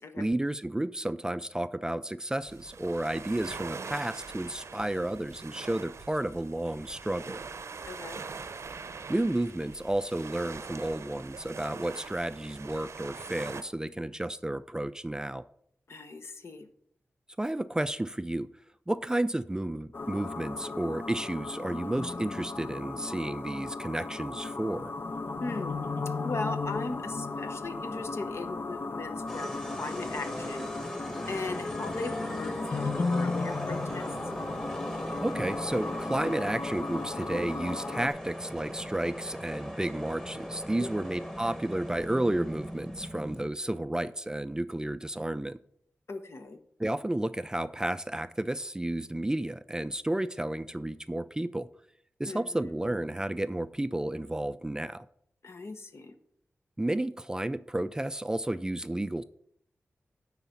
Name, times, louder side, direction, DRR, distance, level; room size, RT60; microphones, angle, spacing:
voice 1, 0.2-7.4 9.1-15.4 17.4-18.5 18.9-24.9 35.2-45.6 46.8-51.7 52.2-55.1 56.8-59.2, right 1 dB, 15° right, 0.3 m, -32 dB
sound 1, 2.4-13.6, right 5 dB, 75° right, 0.7 m, -43 dB
voice 2, 7.9-8.2 15.9-16.7 25.4-25.9 26.2-29.5 29.8-30.7 31.3-34.1 40.8-40.9 46.1-46.6 52.3-52.7 55.4-56.1, left 3 dB, 65° left, 1.0 m, -38 dB
sound 2, 19.9-38.1, left 3 dB, 50° left, 0.6 m, -35 dB
sound 3, 29.3-43.5, equal, 10° left, 1.3 m, -39 dB
9.6 x 4.1 x 7.1 m
wide cardioid pair, 85°, 5 cm